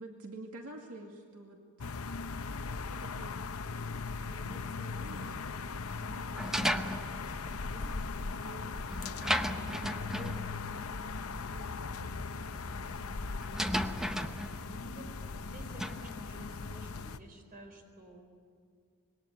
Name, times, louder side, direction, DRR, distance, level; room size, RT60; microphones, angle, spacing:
voice 1, 0.0-1.9 2.6-3.4 4.2-5.5 5.9-8.7 9.5-14.0 14.6-15.4, right 2 dB, 75° right, 2 dB, 2.2 m, -51 dB
sound 1, 1.8-17.2, left 4 dB, 70° left, 0.8 m, -39 dB
sound 2, 6.4-16.1, equal, ahead, 0.9 m, -37 dB
voice 2, 6.6-7.0 14.7-18.2, equal, 40° right, 4 dB, 4.5 m, -50 dB
25.5 x 21.5 x 9.5 m, 2.2 s
head